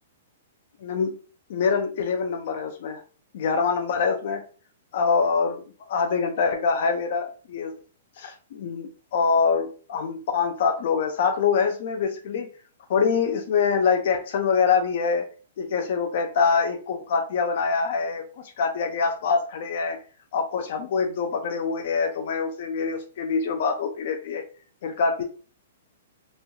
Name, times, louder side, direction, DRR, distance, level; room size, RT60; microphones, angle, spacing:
voice 1, 0.8-1.2 1.5-3.0 3.3-4.4 4.9-5.6 5.9-7.7 8.2-12.5 12.9-15.3 15.6-20.0 20.3-24.4 24.8-25.2, left 5 dB, 55° left, 4 dB, 0.4 m, -24 dB
3.0 x 2.3 x 2.6 m, 0.39 s
hypercardioid pair, 150°, 0 cm